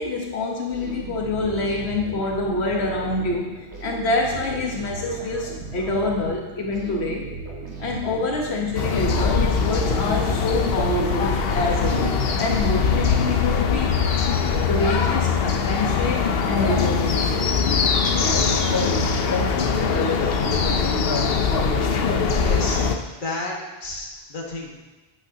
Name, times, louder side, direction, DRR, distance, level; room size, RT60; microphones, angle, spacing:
voice 1, 0.0-7.3 7.8-14.0 14.7-17.5, left 2 dB, 90° left, 0 dB, 1.4 m, -26 dB
sound 1, 0.7-12.9, right 4 dB, 85° right, 2.1 m, -37 dB
sound 2, 8.8-23.0, left 5 dB, 65° left, 0.9 m, -22 dB
voice 2, 22.4-22.8 23.2-24.7, left 2 dB, 50° left, -2 dB, 1.8 m, -32 dB
11.0 x 9.0 x 2.8 m, 1.1 s
omnidirectional pair, 1.1 m